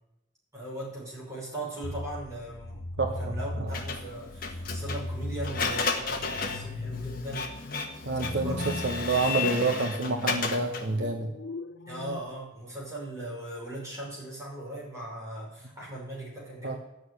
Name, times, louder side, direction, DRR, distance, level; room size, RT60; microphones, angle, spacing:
voice 1, 0.5-2.9 3.2-7.5 8.3-8.7 9.0-9.7 11.9-16.8, right 1 dB, 15° right, -6 dB, 5.5 m, -39 dB
sound 1, 1.8-12.2, left 2 dB, 75° left, 0.8 m, -38 dB
voice 2, 3.0-3.8 8.0-11.3 16.6-16.8, right 3 dB, 60° right, 5 dB, 1.0 m, -28 dB
Printer, 3.7-11.0, left 4 dB, 45° left, 1.4 m, -33 dB
12.0 x 6.5 x 9.6 m, 0.93 s
head